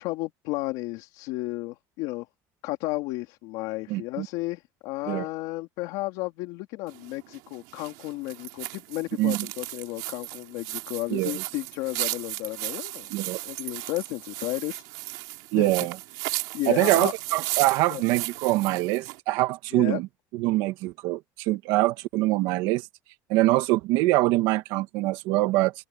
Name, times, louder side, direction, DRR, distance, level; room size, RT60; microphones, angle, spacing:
voice 1, 0.0-2.3 2.6-14.8 15.6-15.7 16.5-17.1 17.9-18.0 19.7-20.0, left 20 dB, 70° left, 2.9 m, -33 dB
voice 2, 3.9-4.3 5.1-5.3 9.2-9.4 11.1-11.3 13.1-13.4 15.5-16.0 16.7-20.1 20.3-22.9 23.3-25.7, right 18 dB, 70° right, 1.6 m, -24 dB
sound 1, 6.9-19.2, right 23 dB, 85° right, 2.9 m, -35 dB
open air
cardioid pair, 175°, 8 cm